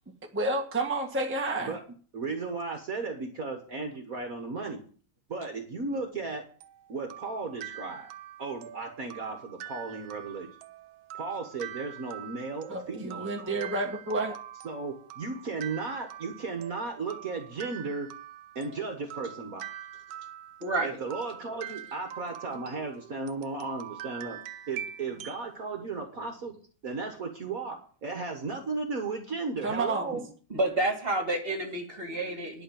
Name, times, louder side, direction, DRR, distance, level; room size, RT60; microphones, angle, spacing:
voice 1, 0.3-1.8 12.7-14.3 29.6-30.1, right 2 dB, 5° right, 1 dB, 1.4 m, -30 dB
voice 2, 2.1-4.8 5.3-6.4 6.9-8.1 8.4-10.5 11.1-13.6 14.6-18.1 18.6-19.7 20.8-24.4 24.7-26.5 26.8-30.3, right 4 dB, 50° right, 4 dB, 1.8 m, -35 dB
sound 1, 6.6-25.5, right 11 dB, 85° right, 1.5 m, -44 dB
voice 3, 20.6-21.0 30.1-30.2 30.5-32.6, right 2 dB, 30° right, 3 dB, 2.3 m, -29 dB
11.0 x 5.7 x 8.7 m, 0.43 s
omnidirectional pair, 2.1 m